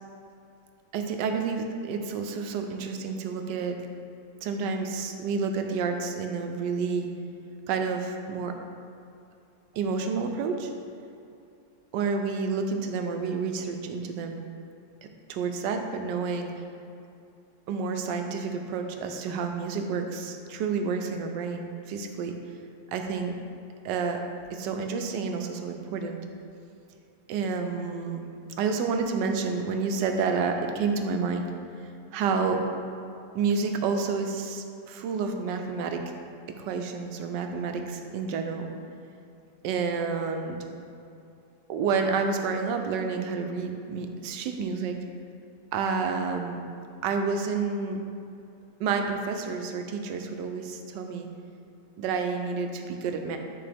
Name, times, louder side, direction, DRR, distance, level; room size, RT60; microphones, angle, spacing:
voice 1, 0.9-3.8 4.4-7.1 7.7-8.5 9.7-10.7 11.9-14.4 15.3-16.5 17.7-22.3 22.9-23.3 23.8-24.2 24.5-26.2 27.3-28.2 28.6-31.4 32.1-32.6 33.3-36.0 36.6-38.7 39.6-40.6 41.7-44.9 45.7-46.6 47.0-48.0 48.8-51.3 52.0-53.4, right 5 dB, 85° right, 5 dB, 1.3 m, -29 dB
9.8 x 3.8 x 3.4 m, 2.6 s
omnidirectional pair, 1.9 m